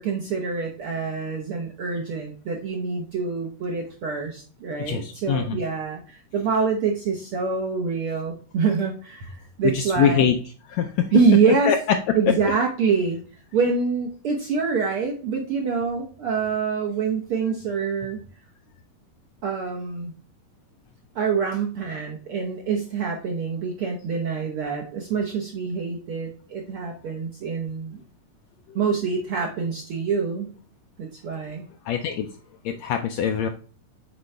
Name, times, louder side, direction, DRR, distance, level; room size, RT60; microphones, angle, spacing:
voice 1, 0.0-10.3 11.1-11.7 12.1-13.2 13.5-18.2 19.4-20.1 21.1-28.0 28.7-30.5 31.0-31.6, right 5 dB, 65° right, 0 dB, 1.4 m, -25 dB
voice 2, 4.8-5.6 9.6-10.4 10.7-11.1 11.6-11.8 12.3-12.4 28.7-28.8 31.8-32.3 32.6-33.5, left 8 dB, 80° left, 6 dB, 1.6 m, -23 dB
8.1 x 4.7 x 3.3 m, 0.40 s
omnidirectional pair, 3.7 m